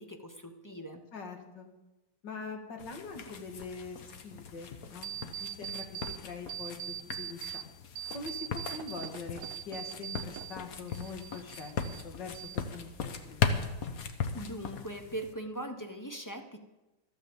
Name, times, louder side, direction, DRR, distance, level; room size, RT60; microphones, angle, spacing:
voice 1, 0.0-1.0 14.3-16.6, right 1 dB, 15° left, 5 dB, 0.6 m, -40 dB
voice 2, 1.1-1.7 2.2-5.1 5.4-7.6 8.1-11.7 12.0-12.9 13.2-13.5, left 4 dB, 70° left, 3 dB, 2.4 m, -43 dB
sound 1, 2.8-15.3, left 6 dB, 55° left, 1.4 m, -38 dB
sound 2, 5.0-6.2 6.5-7.6 8.0-10.6 10.9-12.0 12.3-13.0, right 10 dB, 80° right, 1.4 m, -41 dB
14.0 x 9.3 x 7.1 m, 1.0 s
omnidirectional pair, 2.0 m